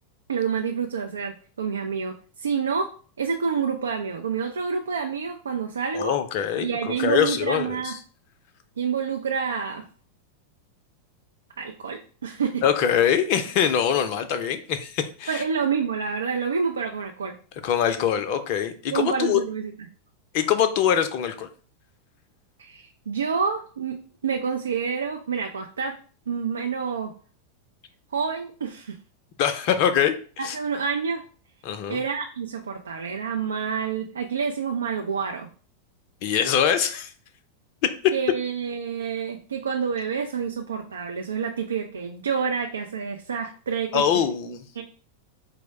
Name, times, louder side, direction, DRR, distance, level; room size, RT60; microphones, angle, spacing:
voice 1, 0.3-2.9 3.2-6.1 6.6-8.0 8.8-9.8 11.6-12.6 15.3-17.4 18.9-19.7 22.6-24.0 24.2-26.0 26.3-27.1 28.1-29.0 30.4-31.2 31.9-35.5 38.1-44.0 44.8-44.9, right 6 dB, 70° right, 5 dB, 0.4 m, -28 dB
voice 2, 5.9-7.9 12.6-15.4 17.6-19.4 20.3-21.5 29.4-30.2 30.4-30.6 31.6-32.0 36.2-37.1 38.0-38.1 43.9-44.6, left 9 dB, 45° left, 10 dB, 0.5 m, -23 dB
4.6 x 2.0 x 4.6 m, 0.41 s
figure-of-eight pair, 90°, 0 cm